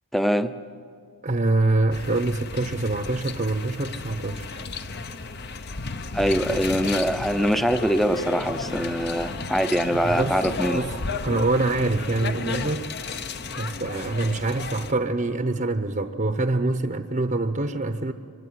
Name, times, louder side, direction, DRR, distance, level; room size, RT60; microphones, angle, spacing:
voice 1, 0.1-0.5 6.1-10.8, equal, ahead, 10 dB, 0.7 m, -23 dB
voice 2, 1.2-4.6 10.0-12.9 13.6-18.1, right 2 dB, 35° right, 8 dB, 0.9 m, -25 dB
sound 1, 1.9-14.9, left 4 dB, 45° left, 0.9 m, -33 dB
26.0 x 23.5 x 9.5 m, 2.3 s
head